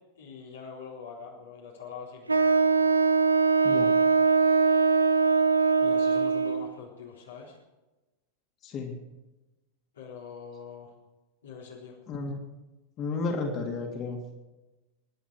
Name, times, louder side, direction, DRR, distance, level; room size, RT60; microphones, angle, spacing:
voice 1, 0.0-2.7 5.8-7.5 9.9-10.9 11.4-12.0, left 6 dB, 65° left, -4 dB, 3.9 m, -44 dB
Wind instrument woodwind instrument, 2.3-6.7, right 4 dB, 80° right, 1.0 m, -22 dB
voice 2, 8.6-8.9 12.1-12.4 13.0-14.2, left 3 dB, 35° left, 1 dB, 3.2 m, -32 dB
25.0 x 11.5 x 4.8 m, 1.1 s
figure-of-eight pair, 90°, 0 cm